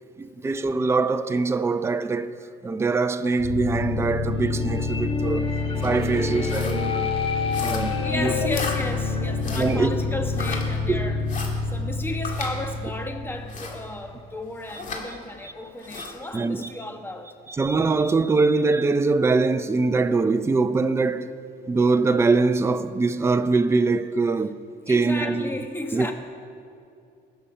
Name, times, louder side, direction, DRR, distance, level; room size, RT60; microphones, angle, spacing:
voice 1, 0.2-2.3 2.6-5.5 5.8-7.1 7.6-8.3 9.5-10.0 10.9-11.1 15.4-15.5 16.0-16.1 16.3-16.7 17.5-21.3 21.7-24.6 24.9-25.5 25.9-26.1, right 3 dB, 15° right, 0.5 m, -23 dB
sound 1, 3.4-14.3, left 4 dB, 30° left, 1.1 m, -27 dB
sound 2, 5.8-6.0 6.4-6.8 7.5-8.0 8.5-8.8 9.4-9.7 10.3-10.6 11.3-11.5 12.2-12.5 13.5-13.8 14.7-15.0 15.8-16.1, left 5 dB, 50° left, 2.3 m, -34 dB
voice 2, 7.7-11.2 11.7-17.3 24.9-26.1, left 2 dB, 15° left, 1.3 m, -34 dB
20.0 x 7.0 x 5.6 m
cardioid pair, 110°, 17 cm